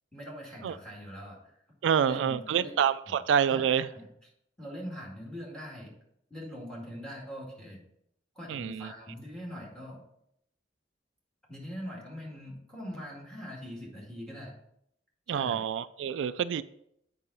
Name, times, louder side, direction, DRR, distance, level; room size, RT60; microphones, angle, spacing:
voice 1, 0.1-1.4 2.0-2.7 3.1-3.2 3.5-4.1 4.6-5.9 6.3-7.8 8.4-10.0 11.5-14.5 15.3-15.6, equal, 5° left, -3 dB, 2.1 m, -42 dB
voice 2, 1.8-3.9 8.5-8.9 15.3-16.6, right 8 dB, 85° right, 14 dB, 0.3 m, -27 dB
7.5 x 5.5 x 4.0 m, 0.75 s
head